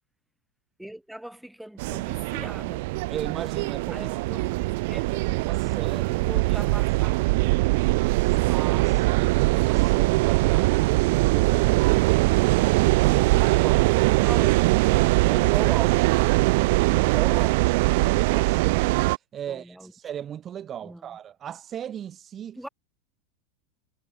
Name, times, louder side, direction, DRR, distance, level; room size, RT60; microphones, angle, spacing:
voice 1, 0.8-2.9 3.9-5.0 6.1-7.7 19.5-19.9 20.8-21.2 22.6-22.7, right 1 dB, ahead, 7.6 m, -42 dB
sound 1, 1.8-19.2, right 23 dB, 60° right, 1.0 m, -22 dB
voice 2, 3.1-4.1 4.9-6.7 8.2-14.3 15.0-22.6, right 9 dB, 25° right, 2.4 m, -37 dB
supercardioid pair, 155°, 0 cm